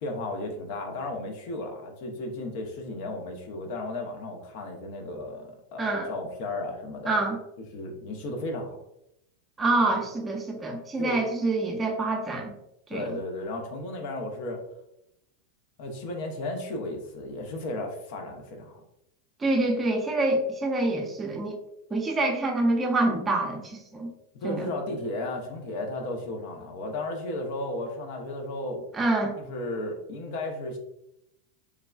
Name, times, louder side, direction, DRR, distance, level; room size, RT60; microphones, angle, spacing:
voice 1, 0.0-7.2 7.7-8.8 10.0-10.1 11.0-11.2 12.9-14.6 15.8-18.8 24.3-28.8 29.4-30.8, left 2 dB, 60° left, 3 dB, 0.6 m, -34 dB
voice 2, 5.8-6.1 7.1-7.4 9.6-12.5 12.9-13.2 19.4-21.6 21.9-24.1 24.4-24.7 28.9-29.3, right 2 dB, 20° right, 1 dB, 0.6 m, -26 dB
3.2 x 2.3 x 2.2 m, 0.83 s
hypercardioid pair, 105°, 0 cm